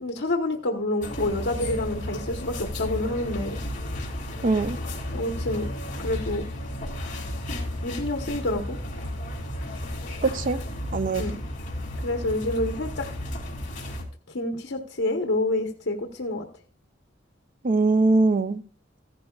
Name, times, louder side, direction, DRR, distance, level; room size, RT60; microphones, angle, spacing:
voice 1, 0.0-3.6 5.1-5.7 6.0-6.5 7.8-8.8 11.2-11.4 12.0-13.1 14.3-16.5, left 2 dB, 70° left, 2 dB, 1.2 m, -28 dB
sound 1, 1.0-14.0, left 1 dB, 40° left, 2.9 m, -33 dB
voice 2, 4.4-4.8 10.2-10.6 10.9-11.2 17.6-18.6, right 3 dB, 45° right, 11 dB, 0.6 m, -21 dB
14.5 x 11.5 x 2.4 m, 0.43 s
head